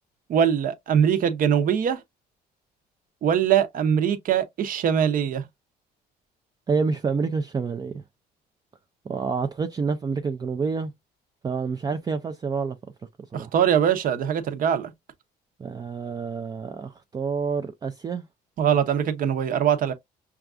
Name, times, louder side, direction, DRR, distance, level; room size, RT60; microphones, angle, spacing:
voice 1, 0.3-2.0 3.2-5.4 13.3-14.9 18.6-19.9, right 8 dB, 55° right, 0.7 m, -22 dB
voice 2, 6.7-8.0 9.1-10.9 11.4-12.8 13.3-13.5 15.6-18.2, right 5 dB, 25° right, 0.4 m, -28 dB
5.7 x 2.4 x 2.4 m
cardioid pair, 110°, 17 cm